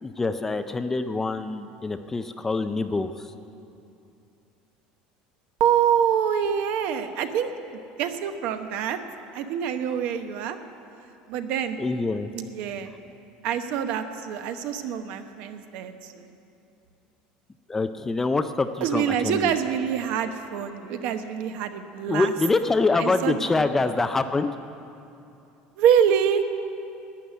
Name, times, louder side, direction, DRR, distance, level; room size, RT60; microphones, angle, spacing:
voice 1, 0.0-3.1 11.8-12.3 17.7-19.5 22.1-24.5, left 3 dB, 10° left, 9 dB, 0.4 m, -25 dB
voice 2, 5.6-9.0 9.3-10.6 11.3-11.8 12.3-12.9 13.4-16.3 18.8-22.3 22.9-23.9 25.8-26.4, right 8 dB, 55° right, 8 dB, 0.9 m, -26 dB
11.5 x 9.7 x 9.2 m, 2.7 s
cardioid pair, 165°, 3 cm